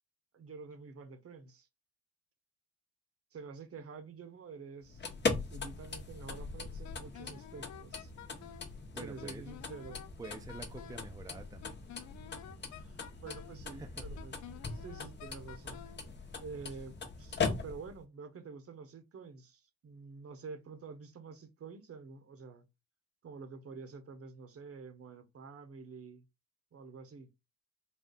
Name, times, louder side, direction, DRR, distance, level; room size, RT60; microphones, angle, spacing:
voice 1, 0.3-1.7 3.3-8.1 9.0-10.0 12.6-14.4 14.7-15.8 16.4-22.6 23.2-26.2 26.7-27.3, right 4 dB, 50° right, 1.0 m, -48 dB
sound 1, 4.8-18.0, left 4 dB, 35° left, 1.0 m, -40 dB
Wind instrument woodwind instrument, 6.8-8.7 9.2-11.1 11.6-13.6 14.2-16.0, left 11 dB, 65° left, 0.5 m, -51 dB
voice 2, 8.9-9.4 10.2-11.8 13.7-14.0, right 3 dB, 10° right, 0.6 m, -47 dB
4.2 x 2.3 x 3.7 m
cardioid pair, 90°, 30 cm